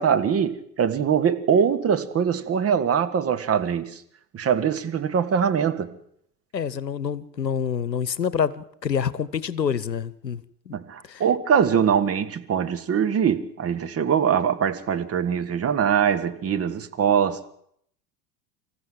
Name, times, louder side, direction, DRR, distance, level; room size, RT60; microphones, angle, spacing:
voice 1, 0.0-3.9 4.3-5.9 10.7-17.5, right 7 dB, 30° right, 1.6 m, -22 dB
voice 2, 6.5-10.7 11.1-11.2, left 7 dB, 85° left, 0.9 m, -27 dB
25.5 x 14.5 x 7.6 m
figure-of-eight pair, 75°, 49 cm